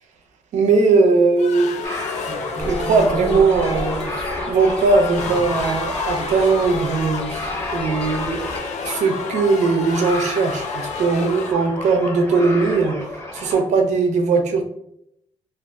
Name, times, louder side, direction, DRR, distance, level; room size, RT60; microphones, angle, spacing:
voice 1, 0.5-1.7 2.6-8.5 8.8-13.0 13.3-14.6, right 4 dB, 85° right, 4 dB, 0.6 m, -19 dB
sound 1, 1.4-11.5, left 5 dB, 80° left, 0.4 m, -31 dB
sound 2, 1.8-13.6, left 2 dB, 20° left, 0.9 m, -31 dB
sound 3, 2.6-8.6, right 1 dB, 55° left, 0.9 m, -34 dB
2.5 x 2.5 x 3.4 m, 0.75 s
cardioid pair, 90°, 12 cm